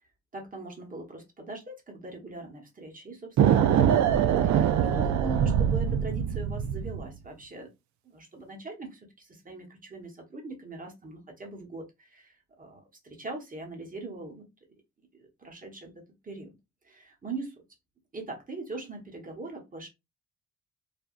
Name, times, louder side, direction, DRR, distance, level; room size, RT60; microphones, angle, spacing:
voice 1, 0.3-7.7 8.0-14.5 15.1-15.9 16.2-16.5 16.8-17.5 18.1-19.9, right 3 dB, 25° right, 2 dB, 1.2 m, -41 dB
sound 1, 3.4-7.1, right 9 dB, 70° right, 0.5 m, -23 dB
3.4 x 2.3 x 2.4 m, 0.23 s
cardioid pair, 90°, 30 cm